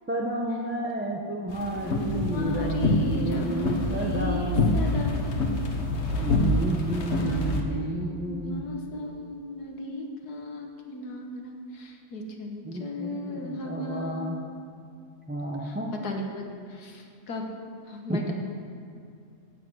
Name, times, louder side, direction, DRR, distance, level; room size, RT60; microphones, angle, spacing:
voice 1, 0.1-4.8 6.2-8.7 12.6-14.4 15.3-15.9 18.1-18.2, right 1 dB, 10° right, -2 dB, 0.5 m, -31 dB
sound 1, 1.5-7.6, left 2 dB, 50° left, 1.3 m, -26 dB
voice 2, 1.8-5.2 5.7-5.8 7.2-14.3 15.6-15.8 16.0-17.5 17.9-18.3, left 1 dB, 75° left, 2 dB, 1.9 m, -35 dB
9.6 x 8.5 x 7.8 m, 2.4 s
omnidirectional pair, 1.7 m